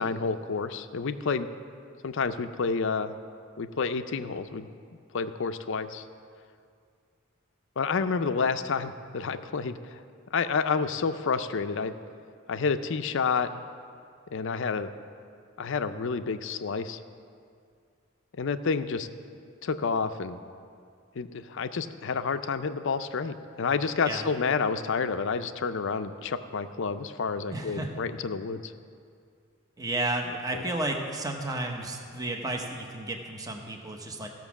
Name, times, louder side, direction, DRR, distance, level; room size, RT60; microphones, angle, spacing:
voice 1, 0.0-1.5 2.0-3.1 3.6-4.7 5.1-6.0 7.8-10.0 10.3-11.9 12.5-13.5 14.3-14.9 15.6-17.0 18.4-19.1 19.6-20.4 21.2-28.7 30.5-30.6, left 5 dB, 65° left, 10 dB, 0.5 m, -29 dB
voice 2, 27.5-28.0 29.8-34.3, right 2 dB, 20° right, 2 dB, 0.8 m, -32 dB
14.5 x 6.0 x 7.2 m, 2.3 s
head